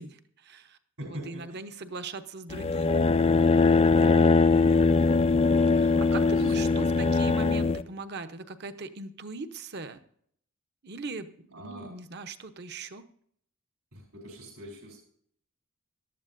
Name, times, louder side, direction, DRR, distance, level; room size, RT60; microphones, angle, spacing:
voice 1, 0.0-3.1 4.5-4.9 5.7-10.0 10.8-13.0, right 3 dB, 50° right, 9 dB, 0.8 m, -40 dB
voice 2, 1.0-1.6 5.9-6.8 11.5-11.9 13.9-15.0, right 1 dB, 75° right, 0 dB, 3.5 m, -43 dB
sound 1, 2.5-7.8, left 4 dB, 25° left, 0.4 m, -22 dB
17.5 x 12.5 x 2.6 m, 0.65 s
head